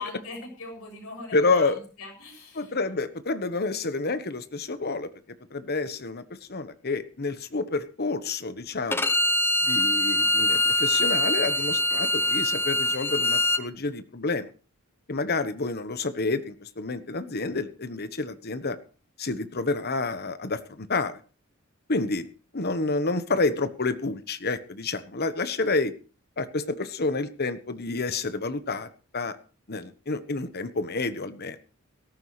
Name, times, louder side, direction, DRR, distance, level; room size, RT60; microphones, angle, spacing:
voice 1, 0.0-2.8, left 3 dB, 80° left, 2 dB, 7.4 m, -40 dB
voice 2, 1.3-1.8 2.6-5.1 5.5-9.1 9.6-14.5 15.1-18.8 19.2-21.2 21.9-22.3 22.5-25.9 26.4-29.4 29.7-31.7, left 3 dB, 50° left, 11 dB, 1.2 m, -29 dB
Bowed string instrument, 8.9-13.6, left 1 dB, 10° left, 0.8 m, -23 dB
18.0 x 14.0 x 3.2 m, 0.35 s
head